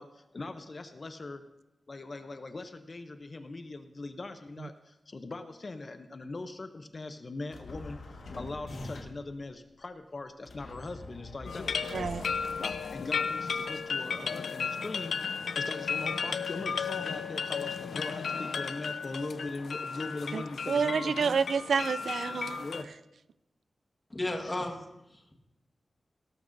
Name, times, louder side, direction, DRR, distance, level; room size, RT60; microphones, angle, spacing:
voice 1, 0.0-1.4 1.9-8.0 8.4-12.1 12.9-15.1 15.6-21.4 22.6-22.9 24.4-24.6, left 2 dB, 35° left, 0.6 m, -41 dB
sound 1, 7.5-9.3 10.5-13.3, left 2 dB, 75° left, 1.5 m, -44 dB
sound 2, 11.4-22.8, left 5 dB, 90° left, 0.6 m, -34 dB
voice 2, 11.9-12.3 20.3-22.7, right 5 dB, 75° right, 0.3 m, -29 dB
voice 3, 24.1-25.3, left 1 dB, 20° left, 1.4 m, -35 dB
18.5 x 12.5 x 2.6 m
wide cardioid pair, 170°, 0 cm